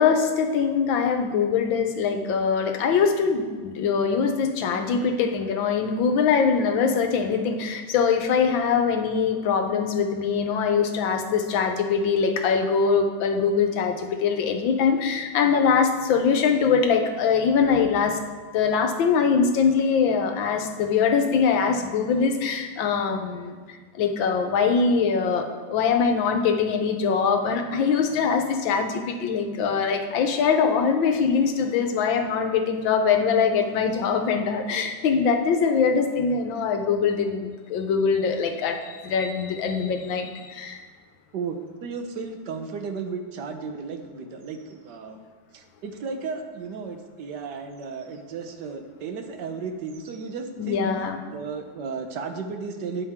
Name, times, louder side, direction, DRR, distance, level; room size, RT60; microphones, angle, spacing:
voice 1, 0.0-18.2 18.5-23.6 24.0-40.8 50.6-51.2, left 6 dB, 80° left, 6 dB, 1.6 m, -23 dB
voice 2, 4.4-5.1 28.8-29.0 29.7-29.8 40.4-40.5 41.3-41.6 41.8-45.2 45.5-50.9 51.3-53.1, right 5 dB, 65° right, 6 dB, 1.4 m, -34 dB
12.5 x 8.6 x 3.6 m, 1.5 s
omnidirectional pair, 2.1 m